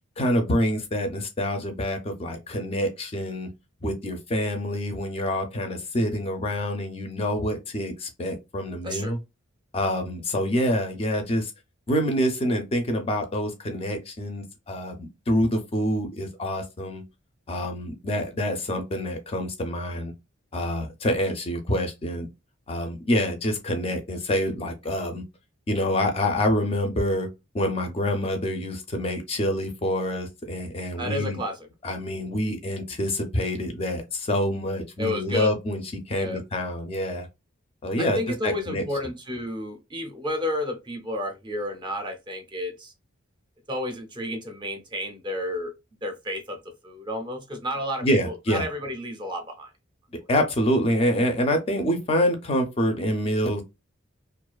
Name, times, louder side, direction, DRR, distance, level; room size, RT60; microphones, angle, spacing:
voice 1, 0.2-3.5 3.8-9.2 9.7-11.5 11.9-17.0 17.5-20.1 20.5-22.3 22.7-25.2 25.7-27.3 27.5-31.4 31.8-37.3 37.8-38.8 48.0-48.7 50.1-53.6, equal, 30° left, 0.4 m, -26 dB
voice 2, 31.0-31.6 35.0-35.5 36.2-36.4 38.0-42.9 43.7-45.7 46.0-49.7, left 1 dB, 25° right, 0.5 m, -31 dB
2.4 x 2.3 x 2.3 m
head